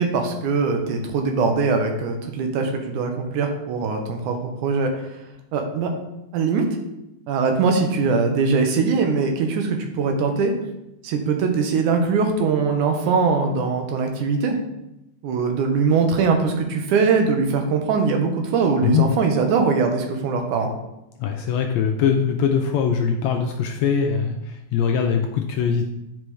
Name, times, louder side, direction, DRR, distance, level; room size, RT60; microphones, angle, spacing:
voice 1, 0.0-4.9 5.5-5.9 6.3-6.7 7.3-10.5 11.0-14.6 15.2-20.7, right 4 dB, 80° right, 4 dB, 2.4 m, -21 dB
voice 2, 21.2-24.4 24.7-25.9, left 7 dB, 80° left, 3 dB, 1.6 m, -21 dB
8.7 x 5.3 x 3.2 m, 0.90 s
omnidirectional pair, 3.5 m